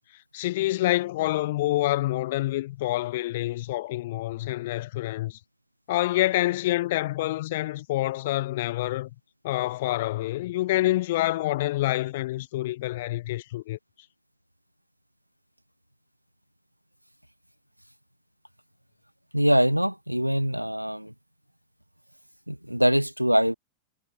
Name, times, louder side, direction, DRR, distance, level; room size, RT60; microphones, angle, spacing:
voice 1, 0.3-5.4 5.9-9.1 9.4-13.8, left 16 dB, 55° left, 0.6 m, -27 dB
voice 2, 19.3-21.1 22.5-23.6, equal, 90° right, 0.4 m, -23 dB
figure-of-eight pair, 90°, 0 cm